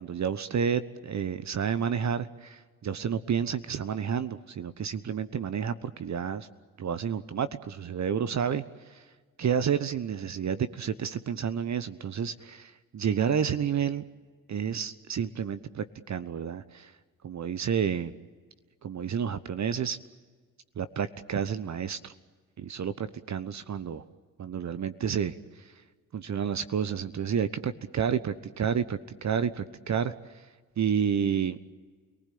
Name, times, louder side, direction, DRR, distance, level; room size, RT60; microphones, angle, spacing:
voice 1, 0.0-6.5 6.8-8.6 8.9-9.0 9.4-14.0 14.5-16.9 17.2-18.1 18.8-20.0 20.8-22.1 22.6-24.0 24.4-25.4 26.1-30.1 30.8-31.6, right 7 dB, 45° right, 14 dB, 1.1 m, -30 dB
29.0 x 19.5 x 8.6 m, 1.5 s
hypercardioid pair, 40°, 40 cm